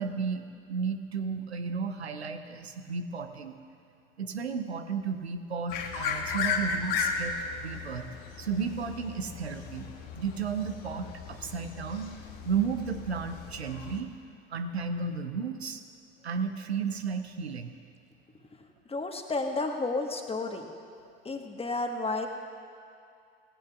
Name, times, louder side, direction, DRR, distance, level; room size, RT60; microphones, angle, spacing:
voice 1, 0.0-3.5 4.2-8.1 8.4-9.9 10.2-12.1 12.4-14.1 14.5-15.8 16.2-17.7, right 5 dB, 90° right, 8 dB, 0.7 m, -33 dB
sound 1, 5.7-14.0, left 5 dB, 65° left, 1.3 m, -35 dB
voice 2, 18.9-20.7 21.2-22.3, left 3 dB, 20° left, 4 dB, 1.4 m, -31 dB
18.0 x 15.5 x 2.4 m, 2.4 s
figure-of-eight pair, 60°, 31 cm